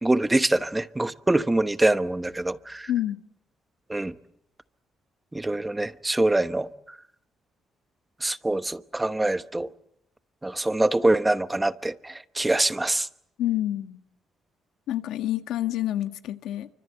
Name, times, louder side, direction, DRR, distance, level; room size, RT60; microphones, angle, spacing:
voice 1, 0.0-2.9 3.9-4.1 5.3-6.7 8.2-9.7 10.4-13.1, right 2 dB, 10° right, 1.0 m, -24 dB
voice 2, 2.9-3.2 13.4-14.0 14.9-16.7, left 13 dB, 90° left, 1.6 m, -28 dB
29.5 x 25.0 x 7.9 m
cardioid pair, 125°, 0 cm